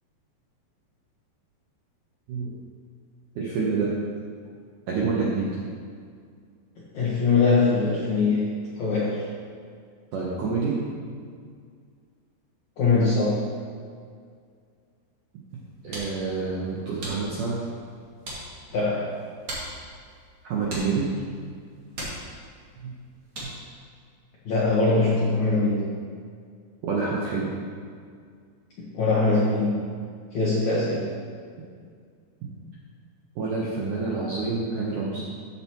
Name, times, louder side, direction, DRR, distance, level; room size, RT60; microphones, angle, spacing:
voice 1, 3.4-4.0 4.9-5.6 10.1-10.8 15.8-17.6 20.4-21.1 22.8-23.0 23.4-23.5 26.8-27.5 33.4-35.3, right 4 dB, 75° right, -5 dB, 1.9 m, -27 dB
voice 2, 6.9-9.3 12.8-13.4 18.7-19.2 24.5-25.9 28.8-29.9 30.3-31.1, left 3 dB, 65° left, -8 dB, 1.8 m, -22 dB
sound 1, 15.5-23.8, right 1 dB, 40° right, 2.3 m, -41 dB
14.0 x 7.0 x 3.0 m, 2.1 s
omnidirectional pair, 5.1 m